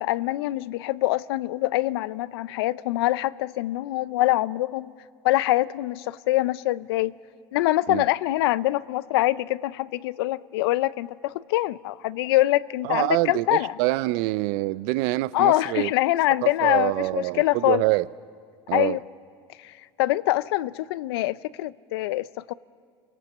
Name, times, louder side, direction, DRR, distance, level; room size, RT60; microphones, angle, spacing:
voice 1, 0.0-4.9 5.2-7.1 7.5-13.7 15.3-17.8 18.7-19.0 19.6-19.7 20.0-22.5, left 17 dB, 85° left, 0.5 m, -24 dB
voice 2, 12.8-15.9 16.4-18.1 18.7-19.0, right 19 dB, 75° right, 0.6 m, -25 dB
28.5 x 18.0 x 7.2 m
supercardioid pair, 95°, 13 cm